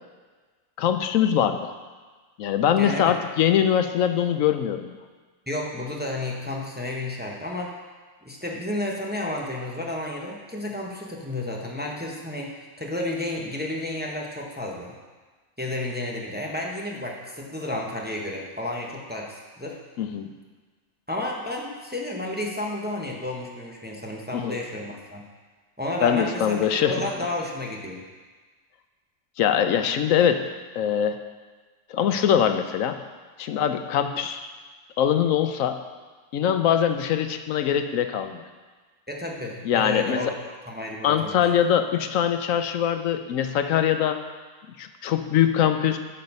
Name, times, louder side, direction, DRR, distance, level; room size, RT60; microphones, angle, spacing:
voice 1, 0.8-1.7 2.4-5.0 20.0-20.3 24.3-24.6 26.0-26.9 29.4-30.4 30.8-31.2 31.9-33.0 33.4-34.5 35.0-35.8 36.3-38.4 39.6-40.2 41.0-44.2 44.8-46.0, left 9 dB, 85° left, 8 dB, 1.0 m, -22 dB
voice 2, 2.8-3.2 5.5-7.7 8.2-15.0 15.6-19.8 21.1-25.2 25.8-28.0 39.1-40.3 40.7-41.4, left 1 dB, 10° right, -1 dB, 0.8 m, -31 dB
9.2 x 5.7 x 5.4 m, 1.4 s
omnidirectional pair, 1.4 m